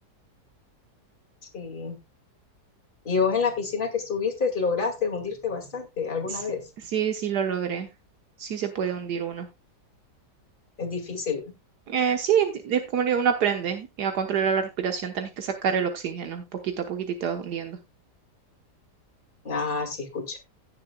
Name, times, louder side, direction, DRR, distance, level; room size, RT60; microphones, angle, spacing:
voice 1, 1.5-2.0 3.0-6.7 10.8-11.5 19.4-20.4, left 5 dB, 30° left, 4 dB, 2.2 m, -28 dB
voice 2, 6.9-7.9 8.4-9.5 11.9-17.8, right 7 dB, 75° right, 6 dB, 1.6 m, -27 dB
17.0 x 6.9 x 2.2 m, 0.24 s
omnidirectional pair, 1.8 m